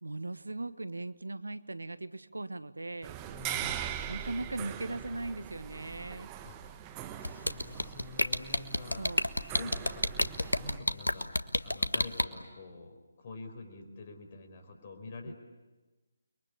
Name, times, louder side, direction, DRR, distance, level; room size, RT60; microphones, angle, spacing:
voice 1, 0.0-3.2 4.1-6.3 9.0-9.2 15.2-15.3, right 2 dB, 80° right, 13 dB, 1.3 m, -39 dB
sound 1, 3.0-10.8, right 10 dB, 20° right, 1.3 m, -41 dB
voice 2, 3.3-3.9 6.4-6.6 7.1-9.0 9.5-11.3 11.6-15.3, left 3 dB, 40° left, 5 dB, 4.9 m, -46 dB
sound 2, 7.2-12.2, left 1 dB, 85° left, 1.4 m, -28 dB
29.5 x 22.5 x 8.6 m, 1.2 s
figure-of-eight pair, 150°, 0 cm